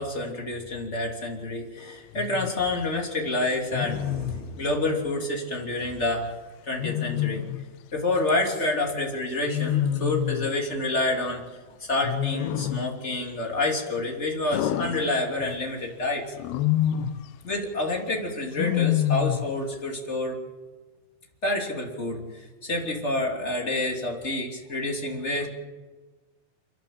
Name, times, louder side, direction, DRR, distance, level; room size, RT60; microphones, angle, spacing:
voice 1, 0.0-6.3 6.6-7.4 7.9-11.4 11.9-16.3 17.4-20.4 21.4-25.5, left 2 dB, 20° left, 0 dB, 2.3 m, -28 dB
Wild animals, 2.1-2.5 3.7-4.4 6.8-7.7 9.5-10.6 12.0-13.0 14.5-15.6 16.4-17.3 18.6-19.6, left 13 dB, 85° left, 2.3 m, -27 dB
30.0 x 11.5 x 7.7 m, 1.3 s
omnidirectional pair, 5.6 m